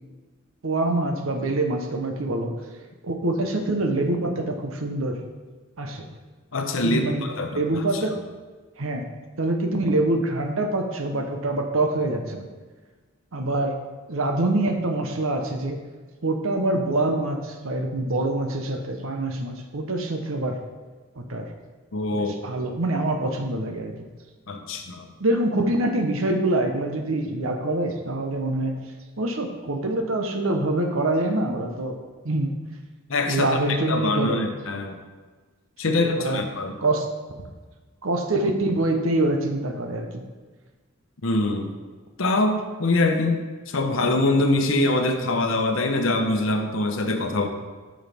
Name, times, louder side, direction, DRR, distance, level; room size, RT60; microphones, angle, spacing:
voice 1, 0.6-2.5 3.0-5.2 5.8-6.0 6.8-7.2 7.5-8.1 8.8-9.1 9.4-12.5 13.3-13.8 14.1-15.8 16.2-20.6 21.2-21.5 22.1-23.9 25.2-28.8 29.2-32.0 32.2-32.5 33.3-34.5 35.8-36.4 36.8-37.1 38.0-40.2, right 2 dB, 80° right, 4 dB, 0.9 m, -25 dB
voice 2, 6.5-8.0 21.9-22.4 24.5-25.0 33.1-35.0 35.8-36.7 41.2-41.7 42.2-47.5, left 2 dB, 70° left, 5 dB, 0.8 m, -24 dB
9.1 x 6.3 x 3.5 m, 1.4 s
head